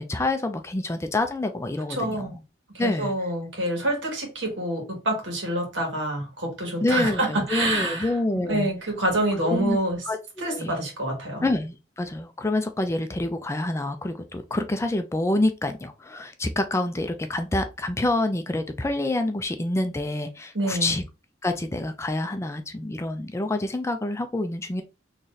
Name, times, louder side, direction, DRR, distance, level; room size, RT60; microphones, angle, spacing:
voice 1, 0.0-2.3 2.8-3.1 6.8-8.7 9.4-9.8 10.1-10.8 11.4-21.0 21.4-24.8, left 2 dB, 15° left, 0.4 m, -27 dB
voice 2, 1.9-2.4 2.7-8.2 8.4-10.0 10.4-11.4 20.5-20.9, right 1 dB, 85° right, 1.7 m, -27 dB
3.9 x 3.1 x 2.6 m
head